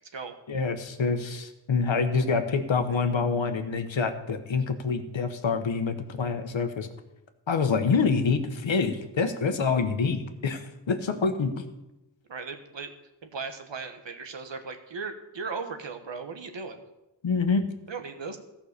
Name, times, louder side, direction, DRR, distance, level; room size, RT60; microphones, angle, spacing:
voice 1, 0.5-6.9 7.5-11.6 17.2-17.6, left 5 dB, 80° left, 8 dB, 1.1 m, -26 dB
voice 2, 12.3-12.9 13.2-16.8 17.9-18.4, right 4 dB, 70° right, 7 dB, 1.3 m, -37 dB
14.5 x 5.8 x 6.7 m, 0.96 s
wide cardioid pair, 85°, 45 cm